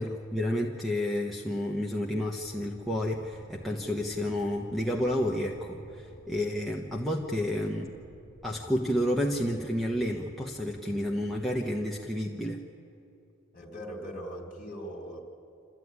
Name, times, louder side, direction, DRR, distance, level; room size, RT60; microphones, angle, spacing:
voice 1, 0.0-7.9 8.4-12.6, left 1 dB, ahead, -2 dB, 1.1 m, -30 dB
sound 1, 2.4-12.1, equal, 60° left, 1.7 m, -51 dB
voice 2, 13.5-15.2, equal, 40° left, 0 dB, 3.6 m, -40 dB
26.5 x 14.0 x 9.7 m, 2.7 s
head